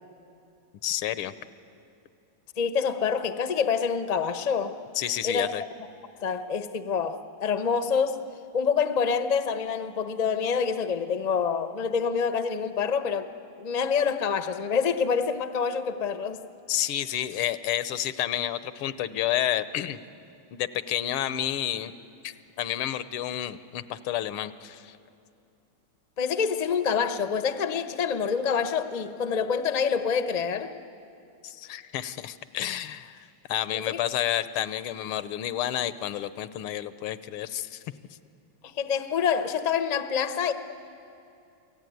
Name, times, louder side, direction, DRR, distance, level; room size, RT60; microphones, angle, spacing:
voice 1, 0.8-1.3 5.0-5.6 16.7-20.0 20.5-21.9 22.2-25.0 31.4-37.8, left 12 dB, 85° left, 14 dB, 1.7 m, -30 dB
voice 2, 2.6-4.7 5.2-5.5 6.2-8.2 8.5-13.3 13.6-16.4 26.2-30.7 33.7-34.0 38.6-40.5, left 6 dB, 65° left, 9 dB, 0.4 m, -26 dB
28.0 x 18.0 x 9.3 m, 2.7 s
omnidirectional pair, 2.3 m